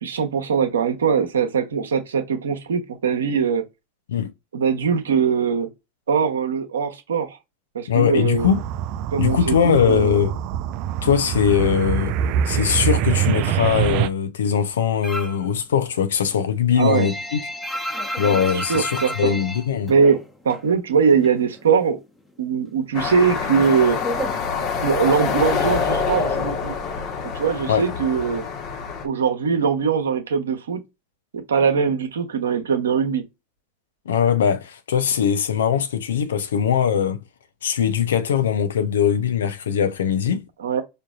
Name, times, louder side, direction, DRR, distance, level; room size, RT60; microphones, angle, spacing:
voice 1, 0.0-3.6 4.5-5.7 6.1-7.4 7.7-8.5 9.1-10.2 16.8-17.1 18.7-19.4 19.9-20.2 20.4-22.0 22.4-24.0 24.8-26.7 27.3-28.4 29.0-30.8 31.3-33.2 40.6-40.8, right 6 dB, 80° right, 0.9 m, -21 dB
voice 2, 7.9-8.6 9.2-10.4 11.0-12.2 12.4-17.4 18.2-19.9 27.7-27.9 34.1-37.2 37.6-40.4, left 8 dB, 80° left, 0.6 m, -21 dB
sound 1, 8.4-14.1, right 10 dB, 55° right, 0.3 m, -24 dB
sound 2, 15.0-15.5 15.8-20.7 21.0-22.0 22.3-25.1, equal, 10° left, 1.0 m, -32 dB
sound 3, 22.9-29.1, left 6 dB, 45° left, 1.1 m, -26 dB
5.0 x 2.6 x 2.4 m
hypercardioid pair, 90°, 0 cm